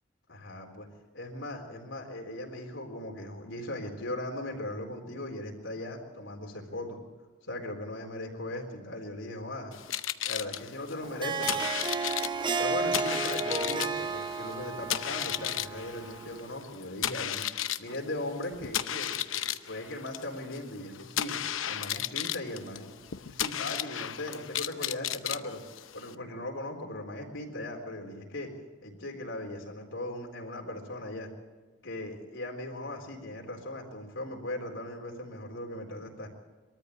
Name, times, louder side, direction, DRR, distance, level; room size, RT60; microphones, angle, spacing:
voice 1, 0.3-0.9 1.1-7.0 7.5-9.7 10.2-11.7 12.6-17.4 17.8-21.4 21.7-25.6 25.9-28.5 28.8-31.3 31.8-36.3, left 1 dB, 70° left, 1 dB, 4.0 m, -38 dB
sound 1, 9.7-26.1, left 11 dB, 90° left, 0.8 m, -35 dB
Harp, 11.0-16.5, right 4 dB, 25° right, 0.8 m, -33 dB
23.0 x 13.5 x 8.5 m, 1.3 s
head